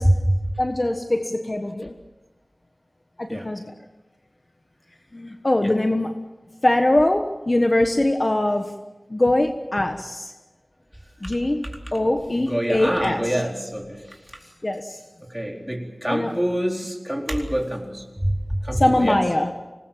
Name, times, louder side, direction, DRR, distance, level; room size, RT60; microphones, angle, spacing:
voice 1, 0.0-0.4 3.3-3.5 5.6-5.7 11.2-11.3 12.0-14.0 15.3-19.2, right 1 dB, 5° right, 1 dB, 4.2 m, -25 dB
voice 2, 0.6-1.9 3.2-3.6 5.1-6.2 6.6-8.7 9.1-10.3 11.2-11.6 11.9-13.2 14.6-15.0 16.1-16.3 18.7-19.5, left 1 dB, 40° left, 5 dB, 1.4 m, -22 dB
25.5 x 19.5 x 7.5 m, 1.1 s
wide cardioid pair, 45°, 0 cm